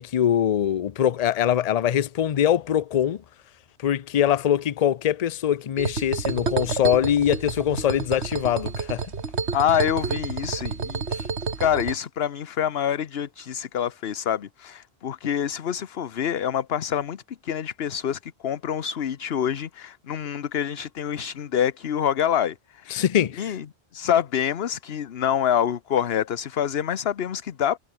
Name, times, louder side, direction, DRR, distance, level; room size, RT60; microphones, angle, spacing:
voice 1, 0.0-3.2 3.8-9.0 11.1-11.3 22.9-23.5, left 10 dB, 45° left, 0.6 m, -23 dB
sound 1, 5.8-11.9, right 5 dB, 85° right, 2.1 m, -29 dB
voice 2, 9.5-11.0 11.6-22.9 23.4-23.6 23.9-27.8, left 9 dB, 70° left, 1.1 m, -26 dB
omnidirectional pair, 1.1 m